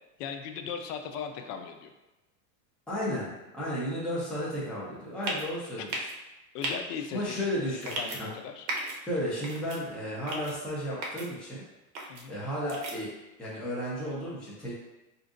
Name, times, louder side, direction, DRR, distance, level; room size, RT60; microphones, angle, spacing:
voice 1, 0.2-1.9 5.8-5.9 6.5-7.4 7.7-8.7 12.0-12.4, left 7 dB, 70° left, 6 dB, 0.6 m, -38 dB
voice 2, 2.9-5.9 7.1-8.3 9.0-11.6 12.3-13.1 13.4-14.7, equal, ahead, -9 dB, 0.8 m, -33 dB
sound 1, 5.2-5.5 5.9-6.1 6.6-6.7 7.8-8.2 8.7-9.0 9.4-9.8 10.3-10.5 11.0-11.3 12.0-12.2 12.7-13.0, right 2 dB, 50° right, 1.0 m, -34 dB
5.0 x 2.7 x 2.5 m, 1.0 s
supercardioid pair, 135°, 49 cm